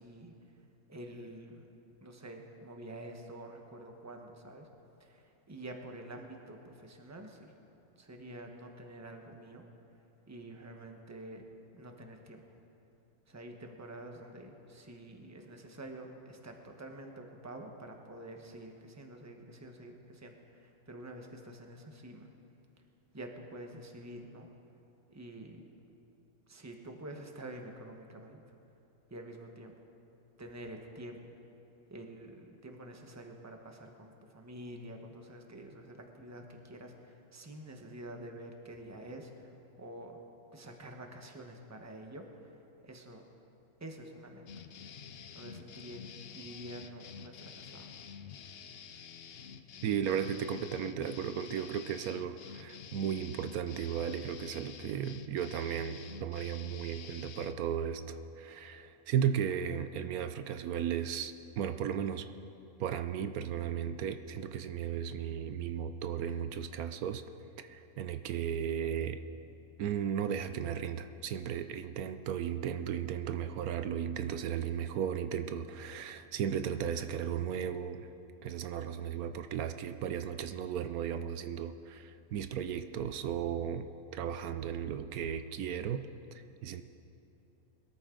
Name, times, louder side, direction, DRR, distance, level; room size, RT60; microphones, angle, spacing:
voice 1, 0.0-1.7 2.0-4.7 5.0-7.5 8.0-9.6 10.2-11.5 11.7-12.4 13.3-22.3 23.1-24.5 25.1-25.7 26.5-28.4 29.1-29.7 30.4-31.2 31.9-40.2 40.5-42.6 42.8-43.2 43.8-44.4 45.3-47.9, right 1 dB, 10° right, 3 dB, 1.0 m, -48 dB
sound 1, 44.5-57.6, left 7 dB, 55° left, 0.7 m, -49 dB
voice 2, 49.8-62.3 62.8-67.2 67.7-69.2 69.8-78.1 78.4-86.1 86.6-86.8, right 8 dB, 80° right, 10 dB, 1.1 m, -35 dB
21.5 x 13.5 x 3.8 m, 2.8 s
omnidirectional pair, 1.5 m